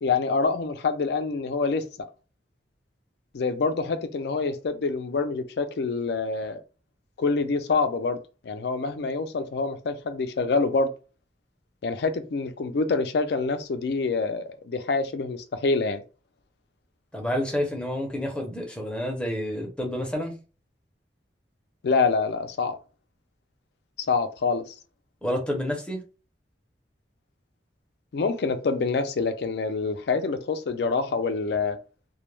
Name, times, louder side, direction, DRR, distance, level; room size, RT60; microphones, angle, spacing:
voice 1, 0.0-1.8 3.3-6.6 7.2-8.2 8.4-10.9 11.8-16.0 21.8-22.8 24.1-24.7 28.1-31.8, left 4 dB, 65° left, 0.4 m, -26 dB
voice 2, 17.1-20.3 25.2-26.0, equal, 5° left, 0.6 m, -29 dB
2.2 x 2.1 x 3.1 m
head